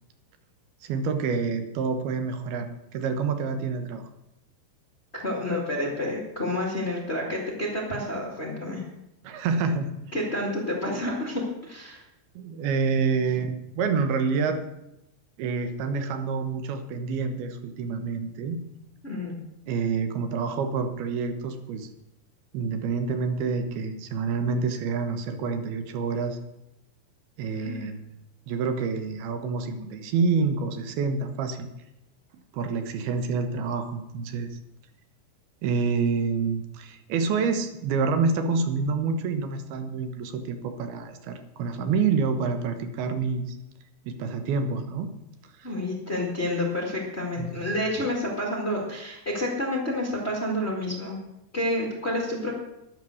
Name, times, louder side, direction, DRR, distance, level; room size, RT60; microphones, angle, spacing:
voice 1, 0.8-4.0 9.2-9.9 12.4-14.6 15.4-18.6 19.7-21.9 22.5-26.4 27.4-28.0 28.5-31.7 32.5-34.6 35.6-43.6 44.1-45.1 45.6-45.7 47.4-47.5, right 5 dB, 70° right, 7 dB, 2.8 m, -27 dB
voice 2, 5.1-8.8 10.1-12.0 19.0-19.3 27.5-27.9 45.6-51.2 51.5-52.5, left 1 dB, 45° left, -2 dB, 0.8 m, -29 dB
13.5 x 10.5 x 6.4 m, 0.89 s
omnidirectional pair, 5.2 m